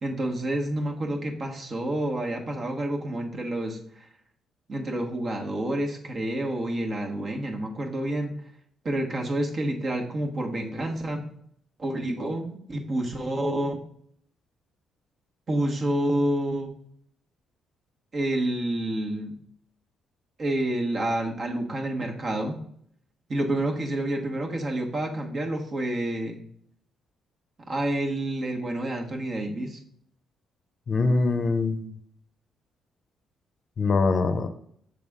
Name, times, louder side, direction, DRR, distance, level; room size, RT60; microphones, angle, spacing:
voice 1, 0.0-4.1 4.7-8.4 8.8-11.3 11.8-13.8 15.5-16.7 18.1-19.4 20.4-22.5 23.3-26.4 27.7-29.8, right 1 dB, 45° right, 2 dB, 1.2 m, -28 dB
voice 2, 30.9-31.9 33.8-34.5, left 3 dB, 50° left, 8 dB, 0.6 m, -23 dB
6.6 x 4.0 x 3.6 m, 0.67 s
cardioid pair, 90°, 0 cm